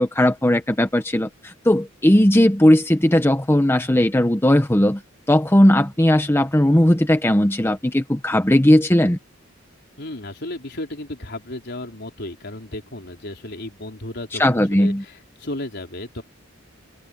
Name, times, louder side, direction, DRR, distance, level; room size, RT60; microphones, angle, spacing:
voice 1, 0.0-5.0 5.3-9.2 14.4-15.0, left 1 dB, 10° left, 1.0 m, -17 dB
voice 2, 10.0-16.2, left 1 dB, 55° left, 4.1 m, -34 dB
open air
head